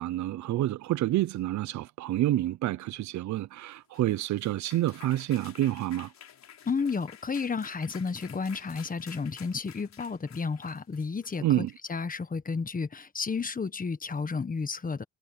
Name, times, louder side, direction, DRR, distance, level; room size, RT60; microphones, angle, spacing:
voice 1, 0.0-6.1 11.4-11.7, right 14 dB, 70° right, 0.6 m, -28 dB
sound 1, 3.7-12.0, left 9 dB, 60° left, 5.0 m, -51 dB
voice 2, 6.6-15.0, left 5 dB, 30° left, 1.4 m, -32 dB
cardioid pair, 90°, 30 cm